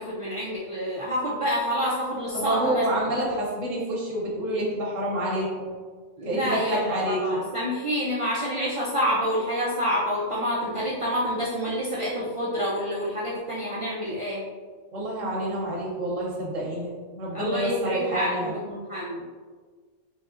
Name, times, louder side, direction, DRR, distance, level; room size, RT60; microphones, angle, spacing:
voice 1, 0.0-2.8 6.2-14.4 17.3-19.2, equal, 60° right, -7 dB, 0.3 m, -28 dB
voice 2, 2.3-5.7 6.2-7.4 14.9-18.6, right 1 dB, 90° right, -5 dB, 1.2 m, -28 dB
4.1 x 3.0 x 2.4 m, 1.5 s
omnidirectional pair, 1.3 m